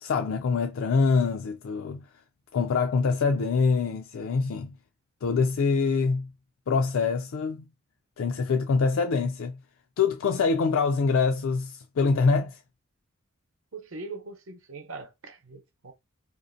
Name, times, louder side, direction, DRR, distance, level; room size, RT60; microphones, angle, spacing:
voice 1, 0.0-2.1 2.5-4.7 5.2-6.3 6.7-7.7 8.2-9.6 10.0-12.6, left 4 dB, 70° left, 0.4 m, -25 dB
voice 2, 13.7-15.9, right 3 dB, 70° right, 0.8 m, -41 dB
4.8 x 2.6 x 2.6 m
head